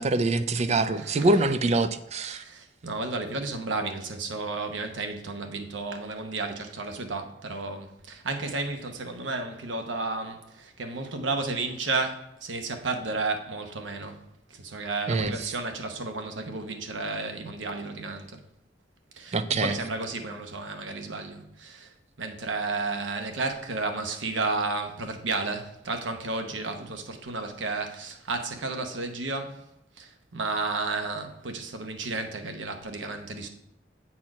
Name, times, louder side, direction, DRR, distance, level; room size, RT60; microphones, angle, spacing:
voice 1, 0.0-2.4 15.1-15.5 19.3-19.8, right 2 dB, 35° right, 11 dB, 0.4 m, -25 dB
voice 2, 1.0-1.3 2.3-14.2 14.5-18.4 19.1-21.9 22.2-29.6 30.0-33.5, right 3 dB, 85° right, 6 dB, 0.9 m, -32 dB
7.4 x 4.3 x 4.7 m, 0.81 s
head